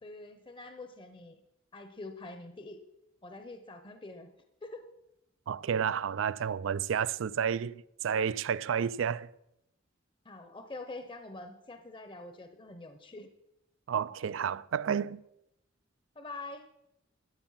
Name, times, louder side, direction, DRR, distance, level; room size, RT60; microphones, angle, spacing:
voice 1, 0.0-1.4 1.7-2.8 3.2-4.3 4.6-4.9 6.4-6.5 10.2-13.3 16.1-16.7, left 2 dB, 25° left, 0.8 m, -45 dB
voice 2, 5.5-9.3 13.9-15.2, right 7 dB, 75° right, 0.4 m, -31 dB
13.0 x 8.9 x 5.7 m
head